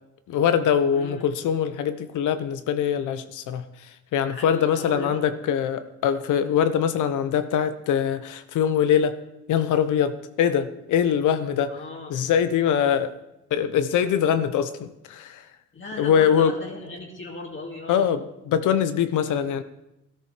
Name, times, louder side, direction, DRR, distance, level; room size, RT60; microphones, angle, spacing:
voice 1, 0.3-9.2 9.5-11.7 12.1-13.1 13.5-15.4 16.0-16.5 17.9-19.6, left 8 dB, 80° left, 11 dB, 1.0 m, -23 dB
voice 2, 0.9-1.2 4.3-5.2 11.7-12.2 15.7-18.1, left 2 dB, 40° left, 0 dB, 2.4 m, -37 dB
13.0 x 13.0 x 5.1 m, 0.89 s
cardioid pair, 90°, 30 cm